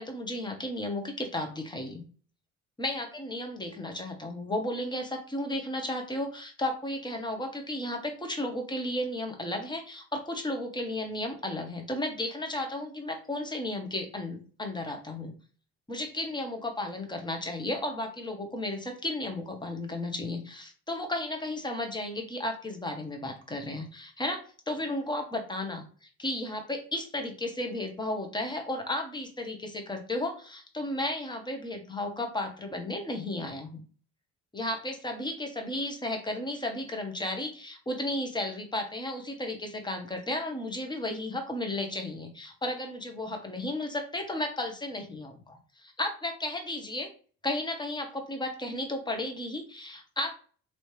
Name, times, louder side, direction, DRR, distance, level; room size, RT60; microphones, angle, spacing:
voice 1, 0.0-2.0 2.8-15.3 15.9-25.8 26.2-33.8 34.5-47.1 47.4-50.3, left 1 dB, 10° left, 4 dB, 1.1 m, -34 dB
3.0 x 2.9 x 3.3 m, 0.41 s
hypercardioid pair, 55°, 40 cm